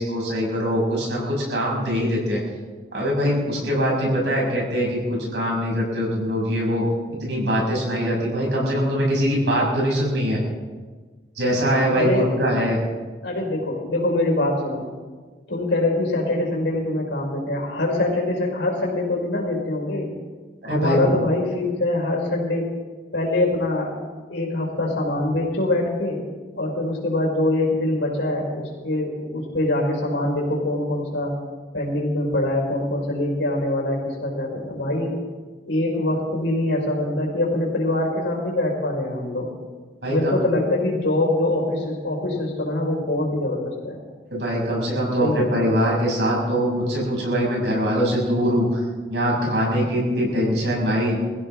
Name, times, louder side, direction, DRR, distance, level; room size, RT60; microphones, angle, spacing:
voice 1, 0.0-2.4 2.9-6.8 7.1-10.4 11.4-12.8 20.6-21.2 40.0-40.4 44.3-48.8 49.1-51.2, equal, 75° right, -3 dB, 6.6 m, -22 dB
voice 2, 11.9-12.3 13.2-14.9 15.5-20.1 20.6-22.7 23.1-23.9 24.3-26.2 26.5-31.3 31.7-35.2 35.7-39.5 40.1-44.0 45.2-45.6, left 1 dB, 90° left, -1 dB, 5.0 m, -24 dB
23.0 x 15.5 x 3.7 m, 1.4 s
head